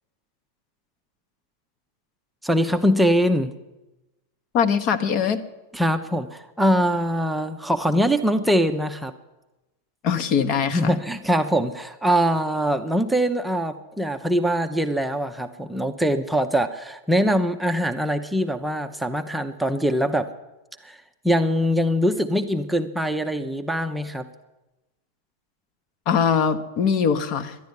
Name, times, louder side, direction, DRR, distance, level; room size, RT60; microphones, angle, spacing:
voice 1, 2.4-3.5 5.7-9.1 10.7-20.3 20.8-21.0 21.2-24.3, equal, 5° right, 5 dB, 0.8 m, -23 dB
voice 2, 4.5-5.4 10.0-11.0 26.1-27.6, left 7 dB, 40° left, 10 dB, 1.1 m, -22 dB
11.5 x 11.0 x 9.9 m, 1.0 s
figure-of-eight pair, 90°, 0 cm